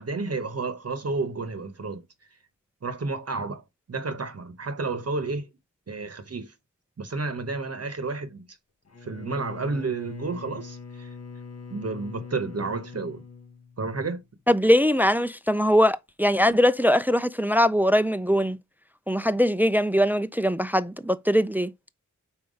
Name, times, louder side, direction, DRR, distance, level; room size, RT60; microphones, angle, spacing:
voice 1, 0.0-2.0 2.8-3.6 3.9-5.5 5.9-6.5 7.0-8.5 9.0-11.1 11.7-13.2 13.8-14.2, right 3 dB, 55° right, 0.9 m, -31 dB
Bowed string instrument, 8.8-14.2, left 5 dB, 55° left, 1.0 m, -42 dB
voice 2, 14.5-18.6 19.1-21.7, equal, 5° right, 0.3 m, -21 dB
5.4 x 4.4 x 5.0 m
wide cardioid pair, 100°, 31 cm